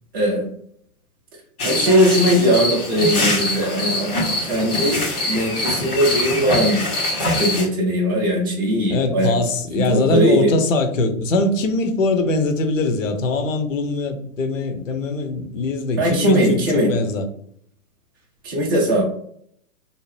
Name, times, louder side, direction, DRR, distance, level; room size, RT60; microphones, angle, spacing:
voice 1, 0.1-0.5 1.6-4.1 4.4-6.8 7.4-9.3 9.7-10.6 16.0-16.9 18.4-19.0, equal, 15° right, 0.4 m, -19 dB
sound 1, 1.6-7.7, left 1 dB, 80° left, 1.4 m, -23 dB
voice 2, 8.9-17.2, left 2 dB, 60° left, 0.7 m, -22 dB
2.7 x 2.0 x 3.1 m
figure-of-eight pair, 120°, 44 cm